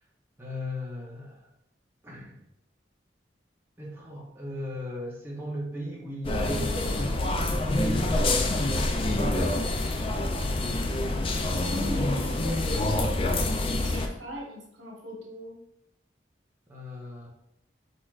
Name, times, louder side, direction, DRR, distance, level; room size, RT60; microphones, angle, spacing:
voice 1, 0.4-1.5 2.0-2.4 3.8-7.2 16.7-17.3, left 1 dB, 10° right, -5 dB, 0.8 m, -37 dB
sound 1, 6.2-14.1, left 2 dB, 30° left, 0.3 m, -26 dB
voice 2, 9.0-9.8 11.6-13.4 13.7-15.6, equal, 80° right, -3 dB, 1.4 m, -39 dB
4.4 x 4.2 x 2.4 m, 0.79 s
head